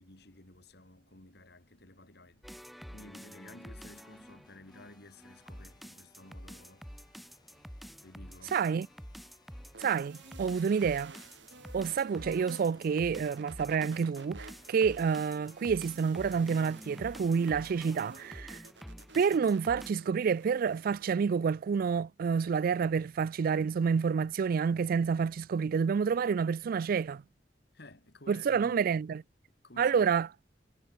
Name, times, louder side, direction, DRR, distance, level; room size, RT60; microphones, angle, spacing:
voice 1, 0.0-6.9 8.0-8.6 27.7-29.0 29.5-30.2, left 2 dB, 65° left, 3.6 m, -54 dB
sound 1, 2.4-19.9, equal, ahead, 4.5 m, -48 dB
sound 2, 3.8-18.2, left 2 dB, 25° left, 6.9 m, -66 dB
voice 2, 8.5-8.9 9.8-11.1 11.7-18.6 19.1-27.2 28.3-29.2 29.8-30.3, right 6 dB, 50° right, 0.3 m, -28 dB
sound 3, 9.7-21.0, right 3 dB, 80° right, 4.6 m, -53 dB
head